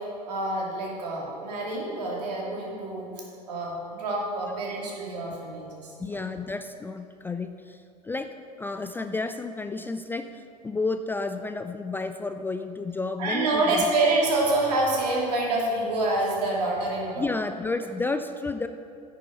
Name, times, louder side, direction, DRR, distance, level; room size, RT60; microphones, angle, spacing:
voice 1, 0.3-5.9 13.2-17.3, right 2 dB, 70° right, -3 dB, 2.4 m, -27 dB
voice 2, 6.0-7.8 8.0-13.9 17.2-18.7, left 3 dB, 10° left, 8 dB, 0.3 m, -31 dB
9.5 x 6.3 x 5.5 m, 2.4 s
hypercardioid pair, 80°, 21 cm